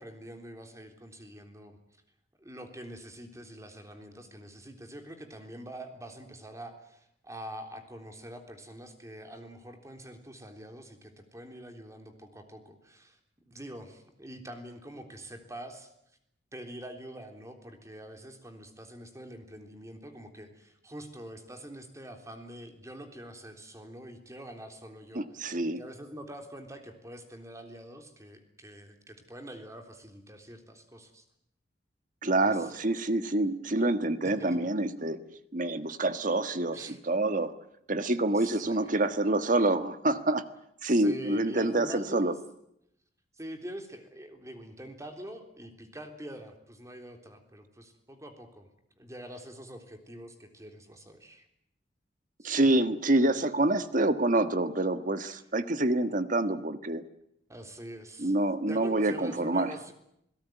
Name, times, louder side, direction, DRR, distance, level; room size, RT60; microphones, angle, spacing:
voice 1, 0.0-1.8 2.4-13.2 13.5-15.9 16.5-31.2 32.4-32.8 34.2-34.6 36.7-37.0 38.3-39.0 40.8-42.3 43.4-48.7 49.0-51.4 52.4-52.5 57.5-58.3 58.7-59.9, right 1 dB, 15° right, 5 dB, 3.6 m, -45 dB
voice 2, 25.1-25.8 32.2-35.2 35.5-37.5 37.9-40.4 40.8-42.3 52.4-57.0 58.2-59.7, right 2 dB, 45° right, 10 dB, 1.5 m, -27 dB
28.0 x 17.5 x 9.3 m, 0.78 s
head